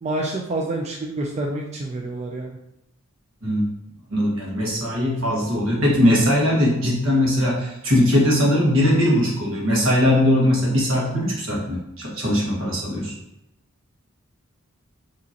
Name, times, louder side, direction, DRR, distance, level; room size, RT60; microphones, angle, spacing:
voice 1, 0.0-2.6, right 2 dB, 30° right, 0 dB, 0.4 m, -28 dB
voice 2, 4.1-13.1, left 1 dB, 70° right, -4 dB, 1.4 m, -20 dB
4.9 x 3.0 x 2.8 m, 0.84 s
head